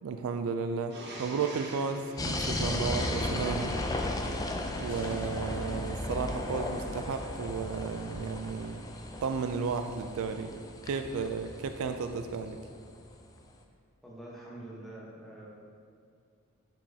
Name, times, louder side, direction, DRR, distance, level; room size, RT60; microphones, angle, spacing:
voice 1, 0.0-3.7 4.8-8.9 9.2-12.6, right 5 dB, 70° right, 7 dB, 0.3 m, -33 dB
sound 1, 0.9-3.6 6.0-7.4, right 1 dB, 50° right, 1.0 m, -46 dB
sound 2, 2.2-12.9, left 1 dB, 15° left, 0.4 m, -35 dB
sound 3, 4.9-7.2, left 2 dB, 65° left, 0.9 m, -50 dB
voice 2, 14.0-15.5, right 1 dB, ahead, -6 dB, 1.1 m, -45 dB
7.0 x 5.3 x 2.8 m, 2.3 s
head